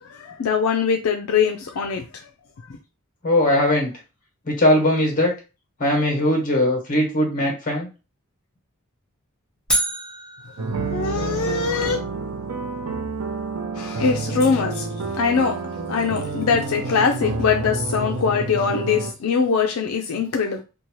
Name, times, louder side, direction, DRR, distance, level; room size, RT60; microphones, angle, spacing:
voice 1, 0.0-2.2 10.9-12.0 13.7-15.6 15.9-20.6, left 6 dB, 75° left, 0.4 m, -22 dB
voice 2, 3.2-3.9 4.5-5.3 5.8-7.9, left 1 dB, 40° left, 1.1 m, -19 dB
sound 1, 9.7-11.8, right 1 dB, 5° left, 0.6 m, -28 dB
sound 2, 10.6-19.1, right 3 dB, 75° right, 0.5 m, -29 dB
2.7 x 2.2 x 3.0 m
head